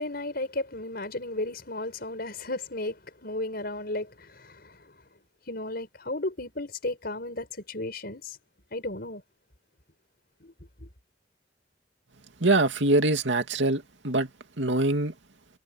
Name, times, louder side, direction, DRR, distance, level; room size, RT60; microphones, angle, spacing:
voice 1, 0.0-4.9 5.5-8.4 8.7-9.2 10.4-10.5 10.8-10.9, left 2 dB, 55° left, 5.6 m, -34 dB
voice 2, 12.4-14.3 14.6-15.1, right 2 dB, 90° right, 2.6 m, -24 dB
head